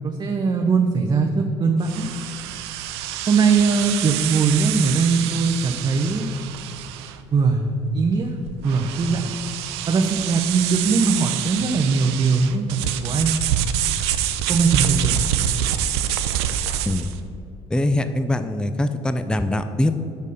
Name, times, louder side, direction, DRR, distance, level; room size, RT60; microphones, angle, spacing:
voice 1, 0.0-2.1 3.3-6.3 7.3-9.3 9.9-13.4 14.5-15.3, right 4 dB, 30° right, 2 dB, 0.7 m, -21 dB
sound 1, 1.8-17.2, right 10 dB, 90° right, 0.4 m, -27 dB
voice 2, 17.7-19.9, left 1 dB, 5° left, 9 dB, 0.5 m, -22 dB
6.4 x 5.3 x 6.7 m, 2.7 s
supercardioid pair, 70°, 13 cm